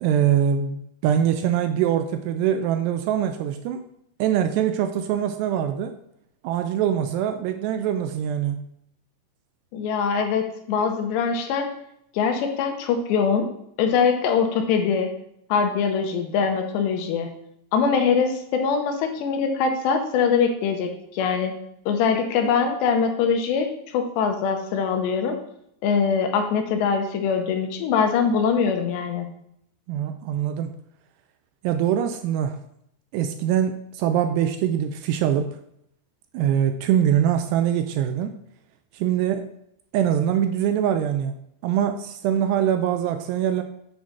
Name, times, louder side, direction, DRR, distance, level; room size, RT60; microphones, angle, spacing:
voice 1, 0.0-3.8 4.2-5.9 6.4-8.6 29.9-30.7 31.6-32.6 33.1-35.5 36.3-38.3 38.9-39.5 39.9-41.3 41.6-43.6, right 9 dB, 85° right, 7 dB, 2.5 m, -23 dB
voice 2, 9.7-11.7 12.1-13.5 13.8-15.1 15.5-17.3 17.7-21.5 21.9-23.7 23.9-25.4 25.8-29.3, left 6 dB, 80° left, 5 dB, 3.1 m, -23 dB
8.4 x 3.9 x 6.0 m, 0.75 s
omnidirectional pair, 5.1 m